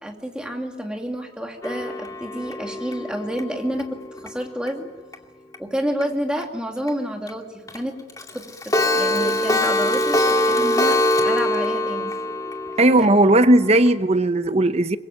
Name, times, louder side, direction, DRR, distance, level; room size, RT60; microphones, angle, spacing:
voice 1, 0.0-4.0 4.2-4.9 5.6-7.5 7.7-8.0 8.3-11.0 11.2-12.1 13.0-13.1, equal, 5° right, 2.6 m, -29 dB
Clock, 1.6-4.7 5.1-5.2 5.5-5.6 6.0-6.1 6.4-6.5 6.9-7.0 7.3-7.4 7.7-7.8 8.1-13.9, left 1 dB, 20° left, 2.2 m, -23 dB
voice 2, 12.8-15.0, right 1 dB, 35° right, 0.9 m, -16 dB
24.5 x 22.0 x 9.0 m
head